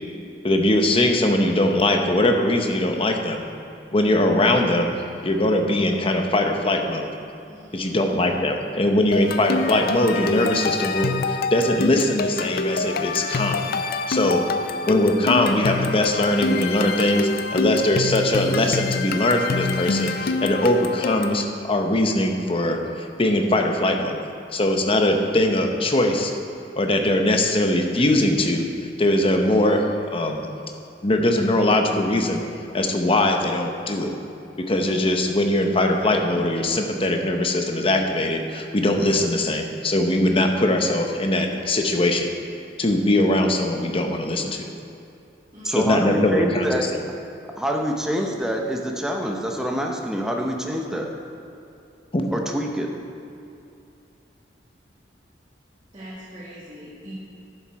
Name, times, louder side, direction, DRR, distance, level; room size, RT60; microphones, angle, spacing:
voice 1, 0.4-3.4 3.9-4.9 5.2-7.1 7.7-13.6 14.1-14.4 14.9-24.2 24.5-26.3 26.8-28.7 29.0-30.5 31.0-32.4 32.7-34.1 34.7-42.3 42.8-44.7 45.8-47.0 52.1-52.2, left 1 dB, 30° left, 4 dB, 0.9 m, -21 dB
voice 2, 7.4-8.0 45.5-45.9 55.9-57.1, equal, 25° right, -9 dB, 1.9 m, -42 dB
sound 1, 9.1-21.4, left 4 dB, 55° left, 0.5 m, -26 dB
voice 3, 45.6-46.8 47.6-51.1 52.3-52.9, equal, 5° right, 0 dB, 0.8 m, -26 dB
11.0 x 7.4 x 4.7 m, 2.7 s
head